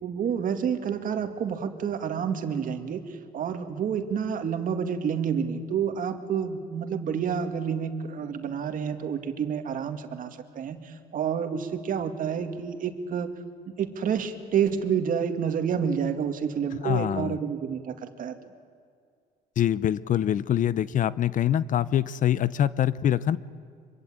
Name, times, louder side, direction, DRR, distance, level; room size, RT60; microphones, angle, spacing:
voice 1, 0.0-3.0 3.3-13.3 13.7-18.4, right 7 dB, 55° right, 7 dB, 2.2 m, -29 dB
voice 2, 16.8-17.4 19.6-23.4, left 10 dB, 50° left, 18 dB, 0.7 m, -24 dB
25.0 x 23.5 x 9.0 m, 2.1 s
cardioid pair, 110°, 17 cm